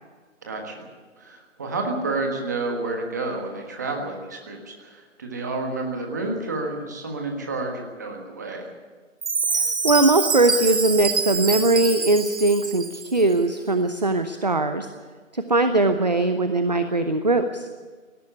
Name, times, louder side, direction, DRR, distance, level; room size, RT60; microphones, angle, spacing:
voice 1, 0.4-0.9 1.2-8.7, right 3 dB, 15° right, 2 dB, 1.5 m, -30 dB
Chime, 9.2-13.2, right 4 dB, 55° right, 1.3 m, -26 dB
voice 2, 9.5-14.9 15.3-17.7, right 2 dB, 35° right, 9 dB, 0.7 m, -21 dB
17.5 x 17.5 x 8.5 m, 1.5 s
figure-of-eight pair, 165°, 39 cm